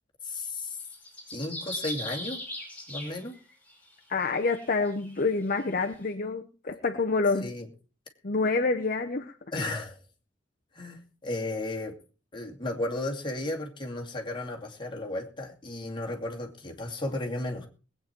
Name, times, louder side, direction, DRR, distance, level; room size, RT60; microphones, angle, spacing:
voice 1, 0.2-0.8 1.3-2.4 2.9-3.4 7.4-7.7 9.5-10.0 10.7-11.9 12.3-17.7, left 2 dB, 25° left, 1 dB, 2.5 m, -34 dB
sound 1, 0.8-3.8 4.3-5.9, left 1 dB, 10° left, 5.3 m, -39 dB
voice 2, 4.1-7.5 8.2-9.3, left 3 dB, 50° left, 5 dB, 0.9 m, -27 dB
20.5 x 8.9 x 4.5 m, 0.35 s
head